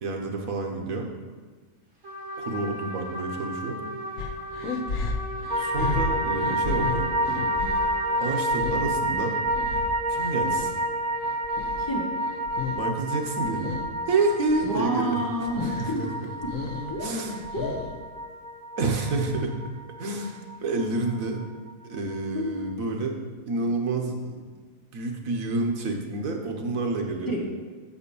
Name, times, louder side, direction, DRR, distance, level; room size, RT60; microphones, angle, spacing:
voice 1, 0.0-1.1 2.4-3.8 5.0-5.1 5.6-7.1 8.2-9.3 10.1-10.7 12.8-13.7 14.1-15.2 15.6-16.3 17.0-17.5 18.8-19.6 20.0-21.4 21.8-23.2 23.5-24.4 24.9-27.4, right 3 dB, 85° right, 2 dB, 1.5 m, -29 dB
Trumpet, 2.0-8.2, equal, 65° right, 2.4 m, -36 dB
sound 1, 4.2-10.8 11.1-12.9 13.2-13.9 14.3-14.9 15.2-15.9 16.2-18.1, left 4 dB, 80° left, 1.1 m, -34 dB
sound 2, 5.5-21.9 22.1-22.2, right 1 dB, 40° right, 0.6 m, -29 dB
voice 2, 11.8-12.1 14.6-16.0 16.4-16.5 16.9-17.1 17.5-17.7 22.3-22.4 27.3-27.4, equal, 15° left, -3 dB, 1.2 m, -29 dB
6.9 x 5.0 x 6.8 m, 1.5 s
omnidirectional pair, 1.4 m